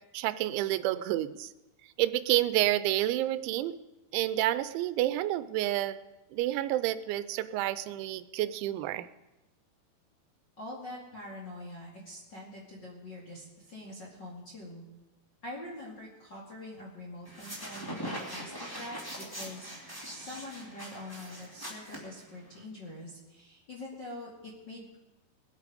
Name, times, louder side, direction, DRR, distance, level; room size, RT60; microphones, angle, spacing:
voice 1, 0.1-1.5 2.0-3.8 4.1-6.0 6.3-9.1, right 14 dB, 90° right, 14 dB, 3.0 m, -29 dB
voice 2, 10.6-14.8 15.4-25.0, left 1 dB, 35° left, -4 dB, 2.0 m, -44 dB
sound 1, 17.2-22.6, equal, 10° left, 1.1 m, -42 dB
21.5 x 8.4 x 5.1 m, 1.0 s
omnidirectional pair, 5.2 m